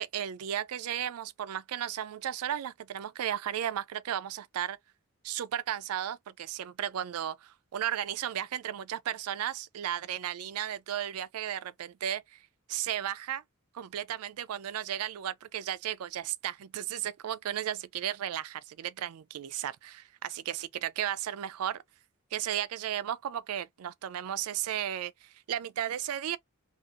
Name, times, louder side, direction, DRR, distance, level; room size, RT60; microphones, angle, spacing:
voice 1, 0.0-4.8 5.2-12.4 12.7-13.4 13.7-21.8 22.3-26.4, right 10 dB, 80° right, 0.4 m, -34 dB
2.8 x 2.4 x 2.4 m
head